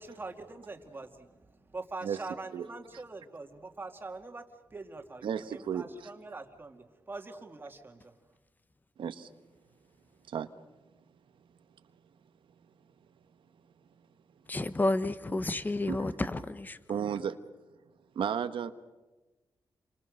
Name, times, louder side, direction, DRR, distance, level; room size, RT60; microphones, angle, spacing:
voice 1, 0.0-4.4 4.7-8.1, right 3 dB, 25° right, 2.4 m, -44 dB
voice 2, 5.2-5.9 9.0-9.3 10.3-10.5 15.9-16.0 16.9-17.4 18.1-18.7, right 8 dB, 85° right, 1.3 m, -33 dB
voice 3, 14.5-16.8, left 2 dB, 20° left, 1.1 m, -30 dB
29.5 x 24.5 x 6.5 m
wide cardioid pair, 130°, 8 cm